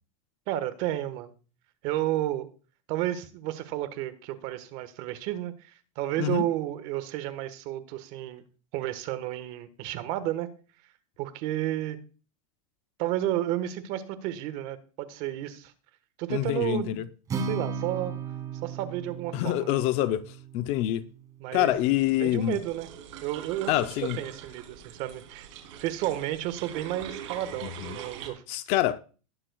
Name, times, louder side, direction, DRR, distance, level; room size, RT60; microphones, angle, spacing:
voice 1, 0.5-1.3 1.8-2.5 2.9-8.4 8.7-10.5 11.2-12.0 13.0-15.7 16.2-17.0 17.4-18.1 18.6-19.8 21.4-21.8 22.2-22.9 23.2-23.7 24.2-25.5 25.8-28.4, right 13 dB, 45° right, 1.3 m, -32 dB
voice 2, 16.3-17.0 19.3-21.0 21.5-22.6 23.7-24.2 27.6-28.0 28.5-29.0, left 14 dB, 40° left, 0.5 m, -26 dB
Acoustic guitar, 17.3-21.5, right 5 dB, 20° right, 1.9 m, -36 dB
sound 1, 21.7-28.3, right 9 dB, 65° right, 3.0 m, -43 dB
20.0 x 7.6 x 2.3 m
supercardioid pair, 155°, 17 cm